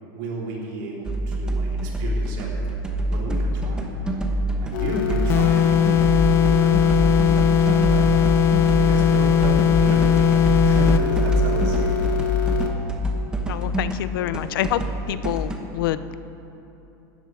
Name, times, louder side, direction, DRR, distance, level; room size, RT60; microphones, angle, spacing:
voice 1, 0.1-2.6 3.1-3.9 4.6-5.9 6.2-8.1 8.6-10.3 10.6-11.9, right 3 dB, 55° right, -3 dB, 3.8 m, -33 dB
sound 1, 1.0-15.6, right 1 dB, 5° right, 1.1 m, -25 dB
sound 2, 4.7-12.7, left 10 dB, 65° left, 1.8 m, -25 dB
sound 3, 5.3-11.1, left 8 dB, 20° left, 0.3 m, -19 dB
voice 2, 13.5-14.8 15.1-16.2, left 13 dB, 80° left, 14 dB, 0.6 m, -26 dB
17.0 x 13.0 x 4.9 m, 2.9 s
supercardioid pair, 165°, 11 cm